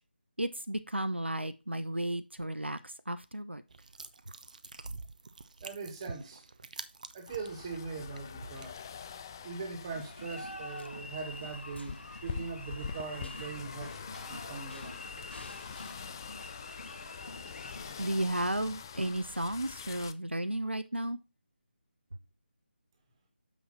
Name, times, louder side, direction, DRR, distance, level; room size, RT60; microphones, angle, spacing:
voice 1, 0.4-3.6 18.0-21.2, right 1 dB, 85° right, 0.8 m, -33 dB
sound 1, 3.7-10.4, right 3 dB, 45° right, 0.8 m, -48 dB
voice 2, 5.6-6.5 7.1-8.8 9.4-15.0, right 4 dB, 25° right, 1.9 m, -41 dB
sound 2, 7.3-20.1, left 7 dB, 20° left, 0.4 m, -45 dB
sound 3, 9.9-18.1, left 1 dB, 75° left, 1.0 m, -46 dB
7.2 x 6.0 x 4.2 m
figure-of-eight pair, 155°, 6 cm